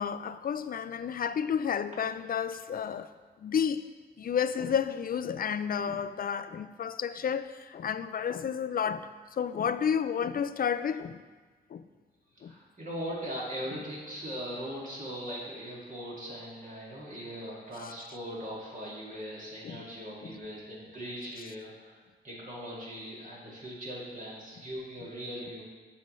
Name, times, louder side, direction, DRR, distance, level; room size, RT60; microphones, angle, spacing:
voice 1, 0.0-3.1 3.4-3.8 4.2-9.1 9.4-11.2 11.7-11.8 12.4-12.5 19.6-19.8 20.2-20.3, left 7 dB, 50° left, 0.4 m, -31 dB
voice 2, 12.4-25.6, equal, 40° right, 2.3 m, -40 dB
7.3 x 6.7 x 3.1 m
cardioid pair, 60°, 19 cm